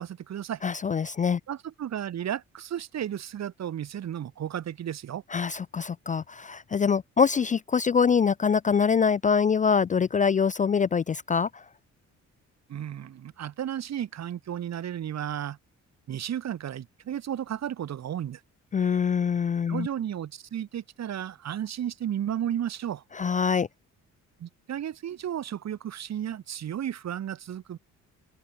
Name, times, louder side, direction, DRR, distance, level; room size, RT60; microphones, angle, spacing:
voice 1, 0.0-0.6 1.5-5.2 12.7-15.6 16.1-18.4 19.7-23.0 24.4-27.8, right 10 dB, 60° right, 2.2 m, -33 dB
voice 2, 0.6-1.4 5.3-11.6 18.7-19.9 23.2-23.7, left 6 dB, 25° left, 0.4 m, -24 dB
open air
cardioid pair, 90°, 30 cm